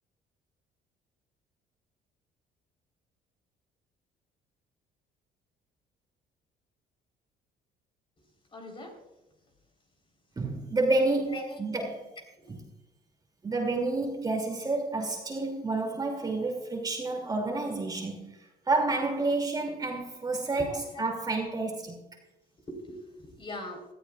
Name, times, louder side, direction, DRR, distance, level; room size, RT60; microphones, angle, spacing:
voice 1, 8.5-9.0 11.3-11.6 12.4-12.5 20.5-21.0 22.7-23.8, left 1 dB, 30° left, 2 dB, 3.9 m, -41 dB
voice 2, 10.4-12.1 13.4-18.4 18.7-22.0, right 2 dB, 25° right, 1 dB, 2.6 m, -29 dB
19.0 x 13.5 x 2.4 m, 0.98 s
cardioid pair, 110°, 17 cm